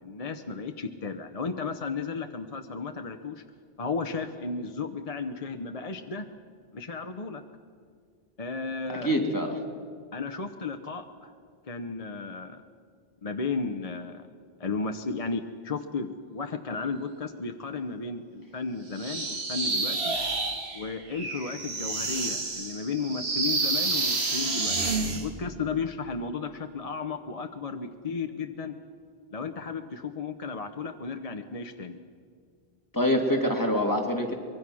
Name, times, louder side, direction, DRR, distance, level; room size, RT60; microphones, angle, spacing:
voice 1, 0.0-3.4 3.8-6.3 6.7-7.4 8.4-9.1 10.1-11.3 11.7-12.6 13.2-14.3 14.6-20.2 20.7-24.8 25.1-28.8 29.3-32.0, left 4 dB, 40° left, 6 dB, 0.9 m, -34 dB
voice 2, 9.0-9.6 32.9-34.3, equal, 20° left, 1 dB, 2.4 m, -25 dB
sound 1, 18.9-25.3, right 3 dB, 80° right, 2.1 m, -29 dB
24.0 x 22.5 x 6.2 m, 2.1 s
omnidirectional pair, 1.0 m